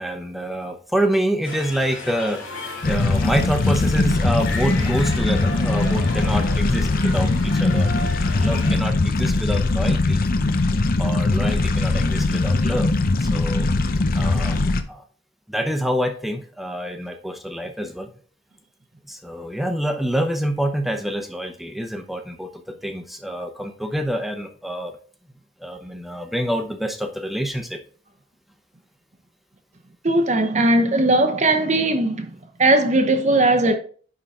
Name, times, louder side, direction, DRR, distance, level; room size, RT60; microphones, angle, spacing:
voice 1, 0.0-10.2 11.0-12.9 13.2-13.7 14.1-15.0 15.5-18.1 19.1-25.0 25.6-27.8, equal, ahead, 0.8 m, -27 dB
sound 1, 1.4-8.7, left 2 dB, 90° left, 3.1 m, -34 dB
sound 2, 2.8-14.8, left 2 dB, 45° left, 0.6 m, -20 dB
voice 2, 30.0-32.3 32.6-33.8, right 2 dB, 35° right, 0.8 m, -18 dB
10.0 x 3.8 x 4.1 m
head